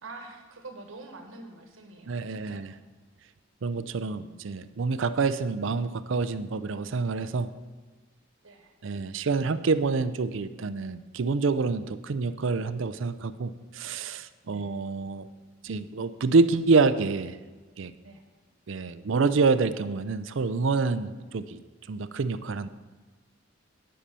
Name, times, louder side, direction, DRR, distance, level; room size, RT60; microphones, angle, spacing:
voice 1, 0.0-2.7 4.0-4.5 8.4-8.7 14.4-14.7 18.0-18.2, right 2 dB, 90° right, 4 dB, 1.4 m, -46 dB
voice 2, 2.1-2.7 3.6-7.5 8.8-15.3 15.6-17.4 17.8-17.9 18.7-21.6 21.9-22.7, right 4 dB, 75° right, 13 dB, 0.5 m, -27 dB
10.0 x 5.6 x 6.8 m, 1.3 s
head